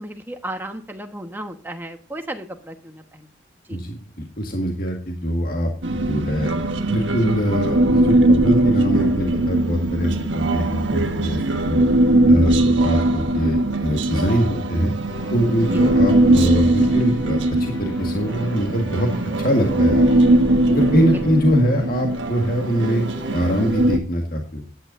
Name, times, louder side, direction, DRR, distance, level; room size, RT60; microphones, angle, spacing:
voice 1, 0.0-3.3 3.7-3.8 15.7-15.8 21.1-21.2, right 1 dB, 10° right, 5 dB, 1.3 m, -34 dB
voice 2, 3.7-6.5 6.9-11.8 12.2-14.9 15.3-19.1 19.4-20.1 20.7-24.6, equal, 45° left, 2 dB, 1.8 m, -23 dB
Human voice, 5.8-24.0, right 1 dB, 70° right, 1.3 m, -20 dB
sound 1, 15.1-23.7, right 1 dB, 20° left, 4.8 m, -37 dB
15.0 x 10.0 x 2.6 m, 0.39 s
head